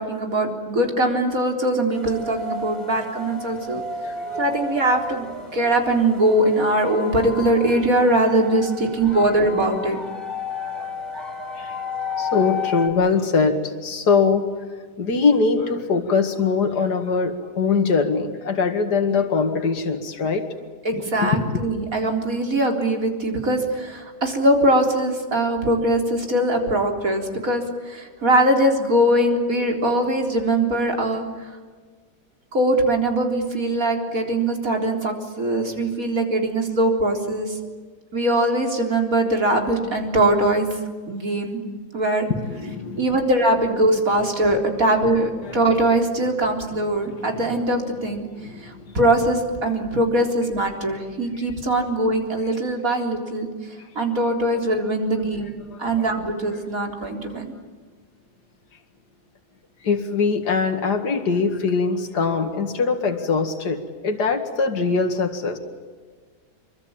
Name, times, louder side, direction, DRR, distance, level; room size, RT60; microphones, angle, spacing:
voice 1, 0.0-3.8 4.4-5.3 5.5-10.0 20.8-31.2 32.5-37.6 38.1-40.7 41.1-41.6 41.9-42.3 43.0-48.2 48.6-53.5 54.0-55.5 55.8-57.5, right 1 dB, 55° right, 3 dB, 4.3 m, -21 dB
sound 1, 1.9-12.9, left 3 dB, 10° left, 5.3 m, -32 dB
voice 2, 4.0-4.4 9.1-9.2 11.6-11.8 12.2-14.4 15.0-20.4 21.0-21.6 42.3-43.1 44.9-45.0 45.4-45.6 46.8-46.9 47.2-47.3 48.4-49.0 51.4-51.5 55.1-55.4 55.6-55.9 56.5-56.6 57.0-57.4 59.8-65.6, left 4 dB, 80° left, 5 dB, 2.6 m, -22 dB
27.0 x 23.5 x 8.8 m, 1.5 s
omnidirectional pair, 1.7 m